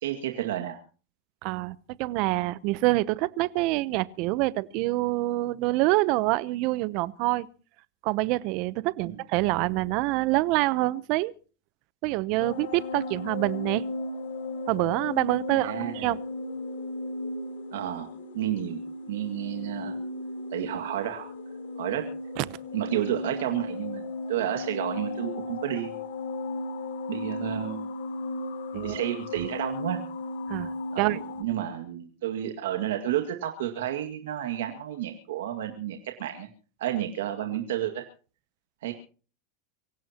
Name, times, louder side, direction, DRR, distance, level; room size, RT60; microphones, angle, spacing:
voice 1, 0.0-0.8 9.0-9.2 15.5-16.1 17.7-18.1 18.3-18.8 19.1-20.0 20.5-21.3 21.8-22.1 22.7-26.0 27.1-27.9 28.8-30.0 30.9-36.5 36.8-38.0 38.8-38.9, right 11 dB, 85° right, 2.0 m, -31 dB
voice 2, 1.4-7.5 8.0-11.3 12.0-13.8 14.7-16.2 22.4-22.5 28.7-29.0 30.5-31.2, right 19 dB, 55° right, 0.8 m, -26 dB
sound 1, 12.4-31.4, left 2 dB, 90° left, 3.5 m, -36 dB
24.5 x 16.0 x 2.9 m
supercardioid pair, 135°, 0 cm